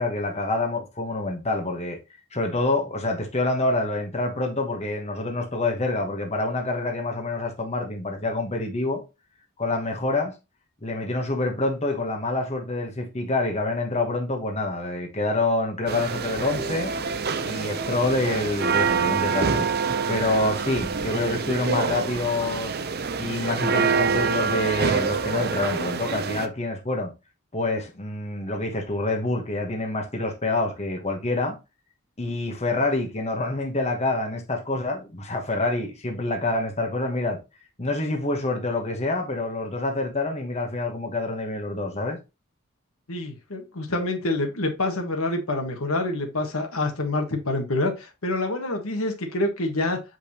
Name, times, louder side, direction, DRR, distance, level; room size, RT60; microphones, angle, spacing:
voice 1, 0.0-2.0 2.3-9.0 9.6-10.3 10.8-16.9 17.4-19.7 20.1-22.8 23.2-27.1 27.5-31.6 32.2-37.4 37.8-42.2, left 2 dB, 30° left, 1.2 m, -27 dB
sound 1, 15.9-26.5, right 5 dB, 45° right, 0.6 m, -26 dB
voice 2, 43.1-50.0, left 2 dB, 70° left, 1.5 m, -27 dB
7.7 x 5.1 x 2.9 m
head